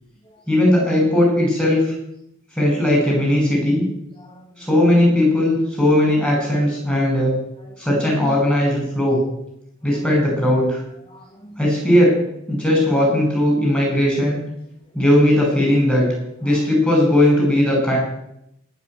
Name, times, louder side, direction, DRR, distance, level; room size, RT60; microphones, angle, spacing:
voice 1, 0.5-1.8 2.6-3.8 4.6-7.4 7.8-9.2 9.8-10.8 11.6-12.2 12.5-14.4 14.9-16.1 16.4-18.0, left 1 dB, 5° left, -2 dB, 6.6 m, -17 dB
voice 2, 4.2-4.7 6.9-7.1 7.6-7.7 11.1-11.6 16.4-16.6, equal, 25° left, 2 dB, 1.5 m, -46 dB
18.5 x 6.5 x 8.2 m, 0.80 s
head